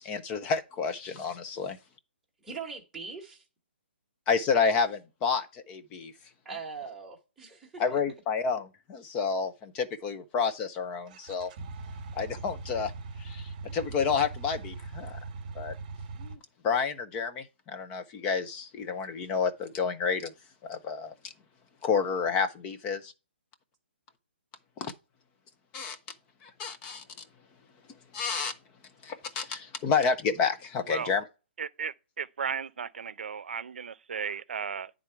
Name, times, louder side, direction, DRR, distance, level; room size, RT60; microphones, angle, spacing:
voice 1, 0.0-1.8 4.3-6.1 7.8-11.5 12.1-12.9 13.2-15.2 15.5-15.7 16.2-16.4 16.6-20.3 20.7-21.1 21.8-23.1 24.8-24.9 25.7-26.0 26.4-27.0 28.1-28.5 29.0-31.2, left 5 dB, 15° left, 0.5 m, -30 dB
voice 2, 2.4-3.4 6.4-8.0, right 5 dB, 5° right, 1.2 m, -41 dB
sound 1, 11.1-16.4, right 3 dB, 25° right, 1.2 m, -41 dB
voice 3, 31.6-34.9, right 6 dB, 70° right, 0.6 m, -35 dB
9.8 x 3.7 x 4.5 m
hypercardioid pair, 170°, 6 cm